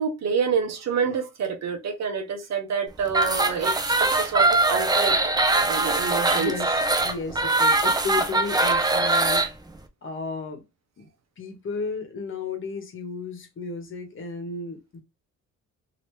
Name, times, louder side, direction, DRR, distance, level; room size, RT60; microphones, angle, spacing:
voice 1, 0.0-3.7 4.2-5.2 5.7-6.5, right 6 dB, 60° right, 0.9 m, -27 dB
sound 1, 3.1-9.5, right 2 dB, 15° right, 0.6 m, -22 dB
voice 2, 6.3-9.5 10.0-10.6 11.0-11.1 11.4-15.0, left 4 dB, 45° left, 1.2 m, -33 dB
2.9 x 2.9 x 3.3 m
cardioid pair, 90°, 30 cm